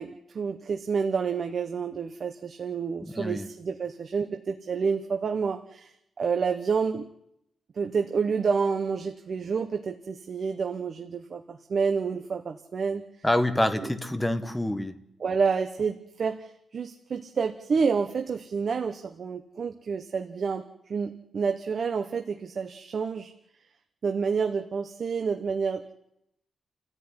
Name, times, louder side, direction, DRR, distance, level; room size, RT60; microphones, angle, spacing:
voice 1, 0.0-7.1 7.7-13.0 13.8-13.9 15.2-23.3 24.0-25.9, right 5 dB, 40° right, 6 dB, 1.1 m, -29 dB
voice 2, 3.0-3.5 13.2-14.9, left 1 dB, 5° left, 8 dB, 1.3 m, -26 dB
29.5 x 14.0 x 9.8 m, 0.82 s
wide cardioid pair, 175°, 0 cm